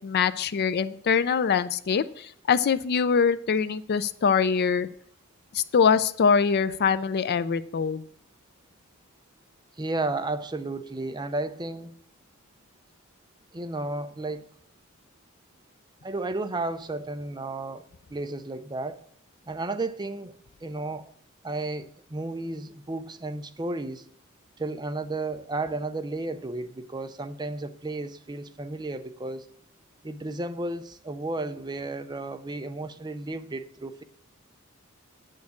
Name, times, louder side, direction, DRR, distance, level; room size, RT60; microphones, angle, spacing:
voice 1, 0.0-4.9 5.5-8.0, left 6 dB, 50° left, 0.4 m, -23 dB
voice 2, 9.8-11.9 13.5-14.5 16.0-17.8 18.1-19.0 19.5-20.3 20.6-21.1 21.4-24.1 24.6-29.5 30.0-34.0, right 2 dB, 20° right, 0.6 m, -33 dB
9.7 x 6.5 x 7.1 m
head